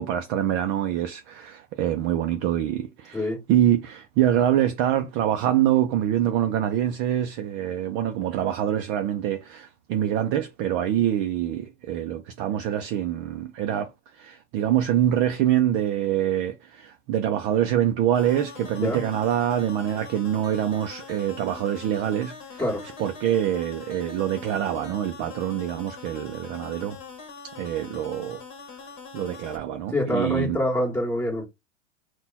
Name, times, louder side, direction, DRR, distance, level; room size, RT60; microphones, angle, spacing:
voice 1, 0.0-22.6 23.0-27.0 27.6-28.4 29.1-30.6, right 11 dB, 35° right, 0.4 m, -25 dB
sound 1, 18.1-29.6, left 5 dB, 35° left, 1.4 m, -43 dB
voice 2, 29.9-31.5, left 1 dB, 5° left, 1.8 m, -25 dB
4.0 x 2.3 x 4.1 m
supercardioid pair, 135°, 37 cm